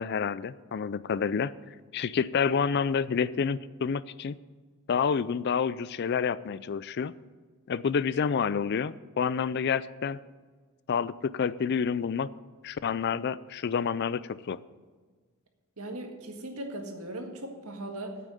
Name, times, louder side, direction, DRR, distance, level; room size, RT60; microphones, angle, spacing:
voice 1, 0.0-1.5 1.9-4.4 4.9-7.1 7.7-10.2 10.9-12.3 12.6-14.6, left 6 dB, 50° left, 18 dB, 0.4 m, -28 dB
voice 2, 15.8-18.2, right 1 dB, 80° right, 4 dB, 1.7 m, -38 dB
9.0 x 8.5 x 7.7 m, 1.4 s
head